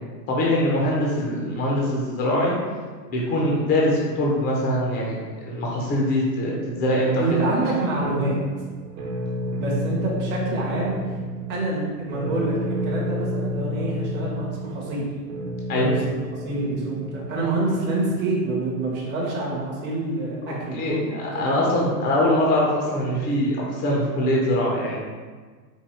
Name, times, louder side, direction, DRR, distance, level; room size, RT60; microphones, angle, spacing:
voice 1, 0.3-2.6 3.1-7.5 15.7-15.9 20.5-25.0, left 1 dB, 20° left, -3 dB, 0.6 m, -23 dB
voice 2, 7.2-8.4 9.5-11.2 11.5-12.6 12.8-15.0 15.8-21.5, right 2 dB, 20° right, -5 dB, 0.9 m, -27 dB
sound 1, 8.0-17.9, equal, 55° right, 1.1 m, -31 dB
4.8 x 2.2 x 4.2 m, 1.5 s
hypercardioid pair, 130°, 49 cm